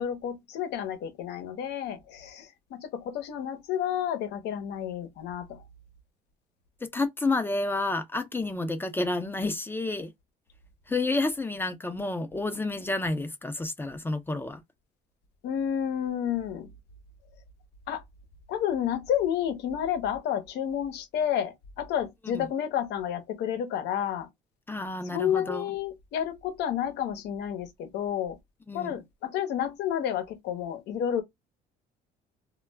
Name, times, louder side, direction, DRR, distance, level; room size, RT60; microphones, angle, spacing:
voice 1, 0.0-5.6 15.4-16.7 17.9-18.0 18.5-24.3 25.1-28.4 28.7-31.2, left 9 dB, 80° left, 0.7 m, -30 dB
voice 2, 6.9-10.1 10.9-14.6 22.2-22.5 24.7-25.8 28.7-29.0, left 2 dB, 10° left, 0.5 m, -30 dB
2.2 x 2.1 x 3.3 m
cardioid pair, 110°, 17 cm